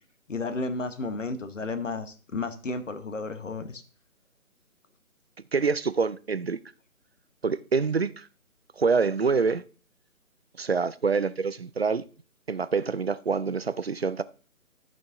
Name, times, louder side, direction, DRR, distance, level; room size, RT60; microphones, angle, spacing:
voice 1, 0.3-3.8, left 3 dB, 60° left, 1.2 m, -32 dB
voice 2, 5.5-6.6 7.4-8.3 8.8-9.6 10.6-12.0 12.5-14.2, right 5 dB, 45° right, 0.4 m, -26 dB
13.5 x 5.2 x 3.8 m
figure-of-eight pair, 150°, 43 cm